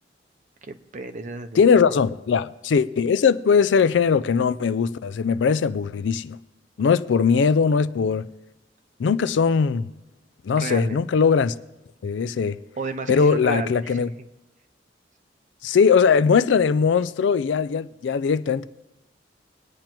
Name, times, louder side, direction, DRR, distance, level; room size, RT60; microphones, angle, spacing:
voice 1, 0.6-2.0 10.6-11.0 12.8-14.1, right 3 dB, 45° right, 0.6 m, -32 dB
voice 2, 1.6-6.4 6.8-8.3 9.0-9.9 10.4-11.5 12.0-12.6 13.1-14.1 15.6-18.6, left 6 dB, 80° left, 0.4 m, -20 dB
22.0 x 8.9 x 3.0 m
head